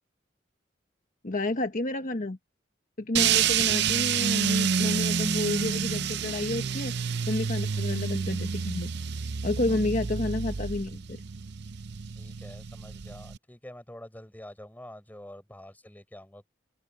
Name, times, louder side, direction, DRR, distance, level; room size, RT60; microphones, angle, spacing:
voice 1, 1.2-2.4 3.0-8.9 9.4-11.2, left 2 dB, 45° left, 1.2 m, -30 dB
sound 1, 3.2-13.4, right 7 dB, 65° right, 0.7 m, -28 dB
voice 2, 12.2-16.5, left 1 dB, 10° left, 4.6 m, -47 dB
open air
head